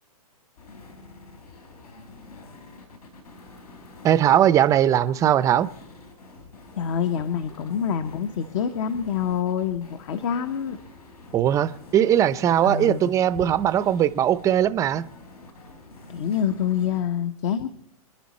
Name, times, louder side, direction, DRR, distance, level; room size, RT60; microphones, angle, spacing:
sound 1, 0.6-17.0, left 2 dB, 80° left, 4.8 m, -47 dB
voice 1, 4.0-5.7 11.3-15.0, right 10 dB, 15° right, 14 dB, 0.5 m, -20 dB
voice 2, 6.8-10.8 12.6-13.4 16.1-17.7, left 8 dB, 50° left, 9 dB, 1.1 m, -26 dB
27.5 x 10.5 x 4.2 m, 0.68 s
hypercardioid pair, 140°, 19 cm